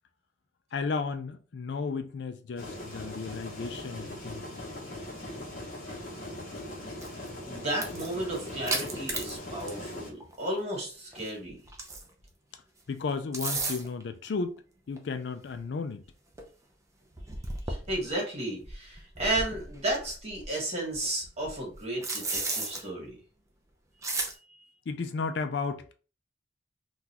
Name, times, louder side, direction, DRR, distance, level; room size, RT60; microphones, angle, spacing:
voice 1, 0.7-4.5 12.9-14.5 14.9-16.0 24.9-25.9, left 4 dB, 65° left, 0.4 m, -33 dB
sound 1, 2.6-10.1, left 1 dB, 45° left, 0.9 m, -40 dB
sound 2, 7.0-7.3 7.7-9.9 10.2-10.3 11.1-12.2 13.1-14.0 15.0-15.1 15.5-15.6 16.0-16.1 16.3-16.4 17.1-18.1 18.6-20.5 20.9-22.8 24.0-24.3, right 3 dB, 15° right, 0.5 m, -34 dB
voice 2, 7.5-11.6 17.7-23.2, right 1 dB, 35° right, 1.3 m, -33 dB
3.8 x 2.4 x 2.8 m
head